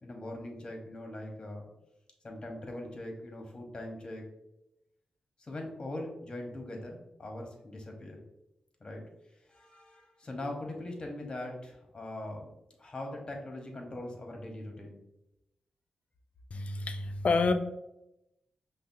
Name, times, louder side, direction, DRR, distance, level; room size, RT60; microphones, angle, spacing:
voice 1, 0.0-1.7 2.2-4.2 5.4-8.2 8.8-9.0 9.5-12.5 12.8-15.0, left 1 dB, 35° left, 2 dB, 0.9 m, -41 dB
voice 2, 16.5-17.5, left 4 dB, 60° left, 9 dB, 0.4 m, -28 dB
5.2 x 2.1 x 2.6 m, 0.87 s
cardioid pair, 65°, 2 cm